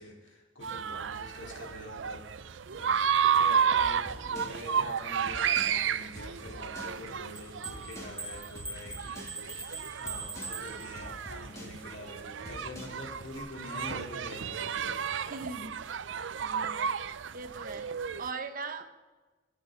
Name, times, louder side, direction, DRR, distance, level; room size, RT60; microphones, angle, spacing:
voice 1, 0.0-3.0 3.2-4.0 4.3-15.2, left 1 dB, 85° left, 4.0 m, -45 dB
sound 1, 0.6-18.3, right 7 dB, 80° right, 0.5 m, -32 dB
sound 2, 3.8-13.4, equal, 15° left, 3.0 m, -47 dB
sound 3, 7.3-11.3, right 3 dB, 5° right, 1.3 m, -42 dB
voice 2, 15.3-17.0 17.3-18.8, right 4 dB, 45° right, 1.1 m, -41 dB
29.5 x 11.0 x 4.0 m
head